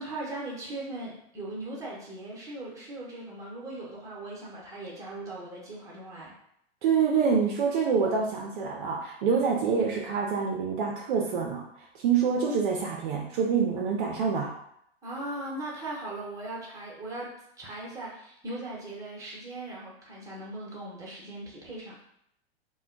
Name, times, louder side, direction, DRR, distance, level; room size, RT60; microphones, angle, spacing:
voice 1, 0.0-6.3 15.0-22.0, right 2 dB, 10° right, -5 dB, 0.9 m, -39 dB
voice 2, 6.8-11.7 11.9-14.5, right 6 dB, 50° right, 0 dB, 0.5 m, -26 dB
2.2 x 2.1 x 3.7 m, 0.73 s
hypercardioid pair, 110°, 32 cm